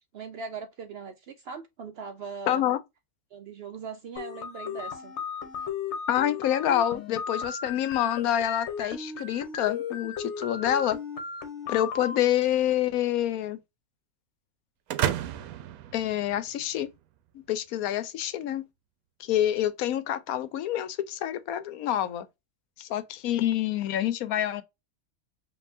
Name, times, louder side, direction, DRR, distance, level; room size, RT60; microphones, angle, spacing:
voice 1, 0.1-2.6 3.3-5.1, right 5 dB, 65° right, 0.6 m, -40 dB
voice 2, 2.5-2.8 6.1-11.0 11.7-13.6 15.9-16.9 17.3-18.6 19.2-22.3 22.8-24.6, left 11 dB, 85° left, 1.1 m, -27 dB
sound 1, 4.2-12.2, left 6 dB, 55° left, 1.1 m, -36 dB
sound 2, 14.9-16.8, right 11 dB, 85° right, 1.1 m, -31 dB
5.4 x 2.8 x 2.6 m
omnidirectional pair, 1.5 m